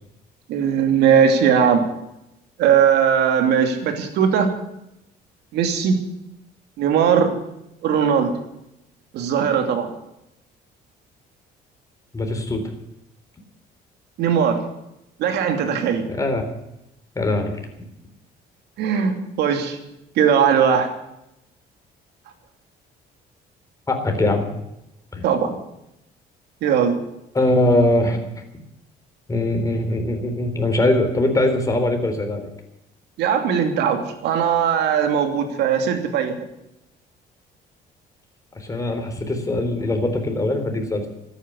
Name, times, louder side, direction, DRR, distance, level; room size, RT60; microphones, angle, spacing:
voice 1, 0.5-1.9 2.6-4.5 5.5-6.0 6.8-7.3 7.8-8.3 9.1-9.9 14.2-14.7 15.2-16.1 18.8-19.8 20.2-20.9 25.2-25.6 26.6-27.0 33.2-36.4, right 7 dB, 80° right, 6 dB, 2.7 m, -19 dB
voice 2, 12.1-12.7 16.1-16.5 17.2-17.6 23.9-24.5 25.1-25.2 27.3-28.2 29.3-32.5 38.6-41.1, left 1 dB, 20° left, 4 dB, 3.8 m, -21 dB
13.5 x 10.0 x 9.8 m, 0.85 s
cardioid pair, 110°, 17 cm